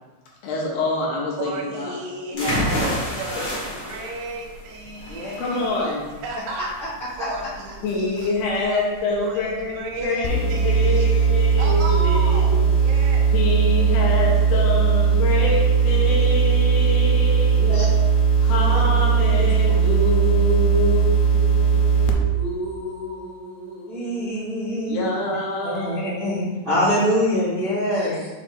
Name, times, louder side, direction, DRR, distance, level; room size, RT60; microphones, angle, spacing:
voice 1, 0.4-1.9 2.3-2.5 2.8-2.9 5.4-6.0 7.8-12.7 13.3-17.8 18.4-26.0 28.0-28.2, left 2 dB, 70° left, -3 dB, 2.8 m, -27 dB
voice 2, 1.4-5.9 6.2-6.8 7.2-13.3, right 2 dB, 85° right, -1 dB, 3.0 m, -33 dB
sound 1, 2.4-10.0, left 1 dB, 45° left, 1.5 m, -30 dB
sound 2, 10.2-22.1, right 6 dB, 90° left, 2.8 m, -18 dB
voice 3, 23.9-25.1 25.6-28.3, equal, 40° right, -12 dB, 0.7 m, -24 dB
7.2 x 3.3 x 4.4 m, 1.2 s
omnidirectional pair, 4.6 m